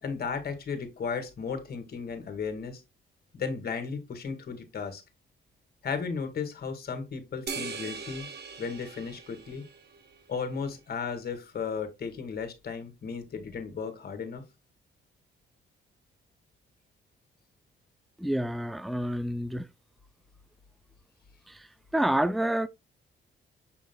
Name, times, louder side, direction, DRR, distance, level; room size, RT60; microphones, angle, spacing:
voice 1, 0.0-2.8 3.3-5.0 5.8-8.3 8.6-9.6 10.3-14.5, left 5 dB, 50° left, 2.0 m, -35 dB
sound 1, 7.5-10.2, right 4 dB, 50° right, 1.5 m, -40 dB
voice 2, 18.2-19.7 21.5-21.7 21.9-22.7, right 1 dB, ahead, 0.4 m, -28 dB
6.9 x 6.3 x 2.2 m
cardioid pair, 115°, 21 cm